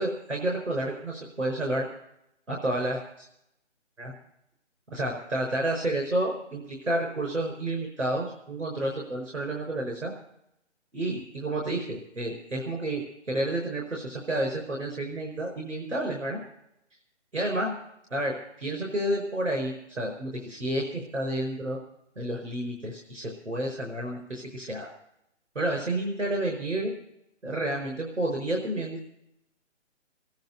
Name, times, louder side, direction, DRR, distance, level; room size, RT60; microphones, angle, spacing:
voice 1, 0.0-1.9 2.5-3.3 4.0-4.1 4.9-10.1 10.9-16.4 17.3-17.7 18.1-21.8 22.2-24.9 25.5-26.9 27.4-29.1, right 1 dB, 90° right, 0 dB, 5.1 m, -30 dB
19.5 x 10.5 x 6.7 m, 0.81 s
figure-of-eight pair, 140°, 36 cm